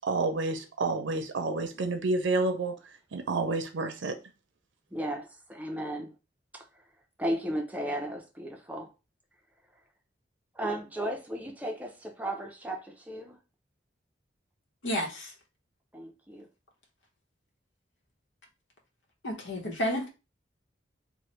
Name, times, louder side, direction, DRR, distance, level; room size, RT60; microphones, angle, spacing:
voice 1, 0.1-2.7 3.1-4.2, right 3 dB, 80° right, 0.5 m, -29 dB
voice 2, 4.9-6.1 6.5-6.8 7.2-8.9 10.5-13.4 15.9-16.5, right 1 dB, 10° right, 0.5 m, -35 dB
voice 3, 14.8-15.3 19.2-20.1, equal, 80° left, 0.9 m, -31 dB
3.0 x 2.1 x 3.0 m
head